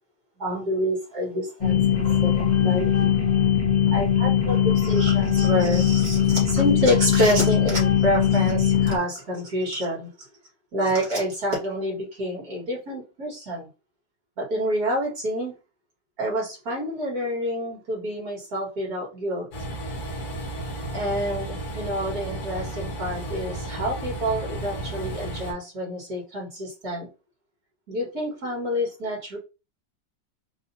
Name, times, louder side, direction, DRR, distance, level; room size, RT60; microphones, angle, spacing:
voice 1, 0.4-3.2 3.9-10.1 10.7-13.7 14.4-15.5 16.2-19.5 20.9-27.1 27.9-29.4, equal, 55° right, 2.5 m, -27 dB
sound 1, 1.6-9.0, left 9 dB, 40° left, 0.6 m, -21 dB
Train, 19.5-25.5, right 1 dB, 65° left, 1.5 m, -33 dB
4.7 x 2.6 x 2.8 m
omnidirectional pair, 1.9 m